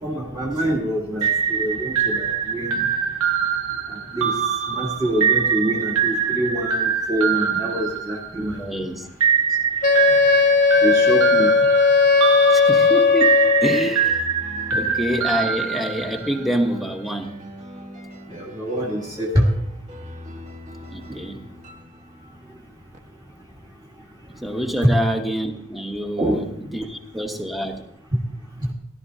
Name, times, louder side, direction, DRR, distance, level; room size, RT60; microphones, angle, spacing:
voice 1, 0.0-2.8 3.9-4.3 4.7-8.9 10.8-11.5 18.3-19.5 21.1-21.2 24.8-24.9 26.2-26.4, right 1 dB, 15° right, -5 dB, 1.6 m, -25 dB
sound 1, 1.2-8.6 9.2-16.4, right 7 dB, 80° right, 1.4 m, -23 dB
voice 2, 8.3-9.1 12.7-14.2 14.7-17.3 20.9-21.4 24.3-26.4 26.7-27.8, equal, ahead, 3 dB, 1.1 m, -26 dB
Wind instrument woodwind instrument, 9.8-14.0, left 5 dB, 35° left, 0.6 m, -16 dB
sound 2, 13.4-23.0, left 1 dB, 35° right, 1.5 m, -41 dB
16.5 x 11.5 x 2.8 m, 0.73 s
head